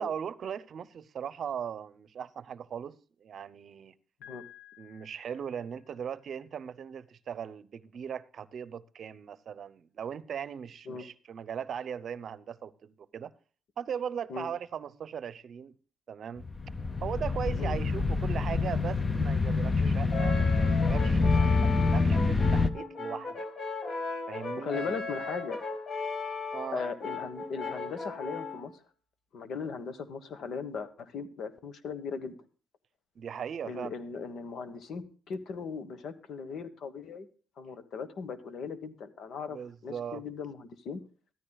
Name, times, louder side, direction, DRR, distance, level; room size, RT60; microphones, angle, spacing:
voice 1, 0.0-3.9 4.8-13.3 13.8-15.7 16.1-16.5 17.0-23.5 24.3-24.8 26.5-26.8 33.2-33.9 39.5-40.2, right 8 dB, 55° right, 0.7 m, -38 dB
Piano, 4.2-6.1, left 12 dB, 90° left, 2.1 m, -54 dB
sound 1, 16.4-22.7, left 3 dB, 25° left, 0.7 m, -26 dB
Brass instrument, 20.1-28.7, left 3 dB, 45° left, 1.9 m, -37 dB
voice 2, 24.6-25.6 26.7-28.7 29.3-32.3 33.6-37.3 37.6-39.6 39.8-41.0, left 5 dB, 65° left, 1.3 m, -38 dB
13.5 x 13.5 x 2.3 m
cardioid pair, 90°, 0 cm